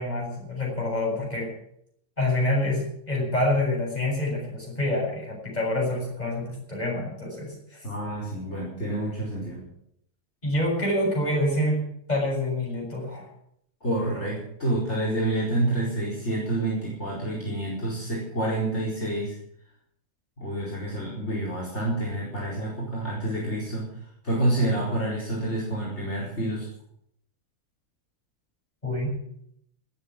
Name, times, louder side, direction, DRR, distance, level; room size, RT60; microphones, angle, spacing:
voice 1, 0.0-1.5 2.2-7.9 10.4-13.3 28.8-29.2, left 1 dB, 30° left, -2 dB, 7.0 m, -27 dB
voice 2, 7.8-9.6 13.8-19.4 20.4-23.9 24.2-26.7, right 1 dB, 50° left, -5 dB, 4.9 m, -28 dB
19.0 x 7.9 x 8.9 m, 0.73 s
omnidirectional pair, 1.5 m